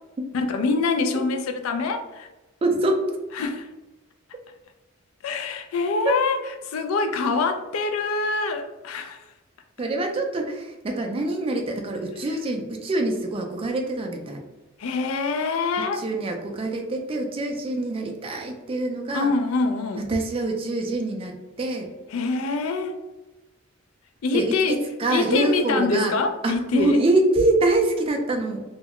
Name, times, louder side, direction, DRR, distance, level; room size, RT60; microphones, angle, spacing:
voice 1, 0.3-2.3 3.4-3.7 5.2-6.4 6.6-9.2 14.8-16.0 19.1-20.1 22.1-23.0 24.2-24.8 25.1-27.0, left 4 dB, 80° left, 7 dB, 0.3 m, -25 dB
voice 2, 2.6-3.1 6.1-6.2 9.8-14.4 15.8-19.3 20.0-21.9 24.3-26.1 26.4-28.6, right 2 dB, 25° right, 2 dB, 0.3 m, -25 dB
2.3 x 2.0 x 3.5 m, 1.1 s
head